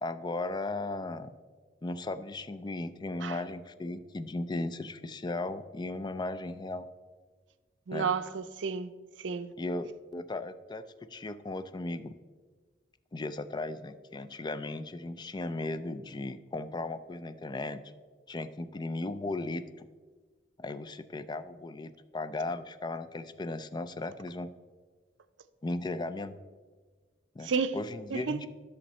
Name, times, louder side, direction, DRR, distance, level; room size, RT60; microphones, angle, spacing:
voice 1, 0.0-1.3 1.8-6.9 7.9-8.1 9.6-12.1 13.1-17.8 18.3-19.9 20.6-24.5 25.6-26.4 27.4-28.5, left 2 dB, 25° left, 0.4 m, -36 dB
voice 2, 7.9-8.9 9.2-9.5 27.4-27.8 28.1-28.5, right 5 dB, 90° right, 0.5 m, -31 dB
11.0 x 6.5 x 4.2 m
head